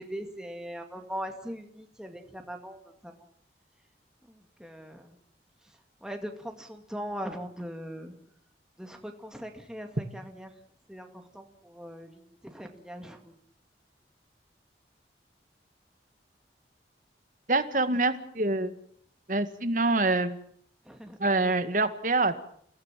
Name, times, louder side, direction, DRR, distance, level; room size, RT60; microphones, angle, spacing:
voice 1, 0.0-3.2 4.2-5.2 5.6-8.1 8.8-10.5 10.9-13.3 20.8-21.2, equal, 5° right, 4 dB, 2.2 m, -40 dB
voice 2, 17.5-18.7 19.3-20.4 21.2-22.4, right 2 dB, 45° right, 10 dB, 2.0 m, -25 dB
30.0 x 17.5 x 7.5 m, 0.64 s
head